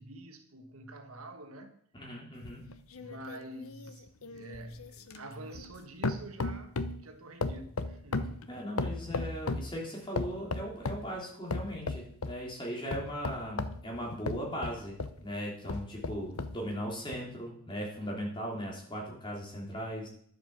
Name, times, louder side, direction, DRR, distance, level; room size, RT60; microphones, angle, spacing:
voice 1, 0.0-1.8 3.0-8.4, right 1 dB, 80° right, 1.5 m, -47 dB
voice 2, 1.9-2.6 8.5-20.1, equal, 20° left, 3.3 m, -38 dB
sound 1, 2.4-5.8 6.0-7.0 7.4-9.7 10.2-11.1 11.5-12.4 12.9-15.2 15.7-16.6 17.1-17.2, left 3 dB, 80° left, 0.8 m, -35 dB
11.0 x 7.5 x 6.7 m
head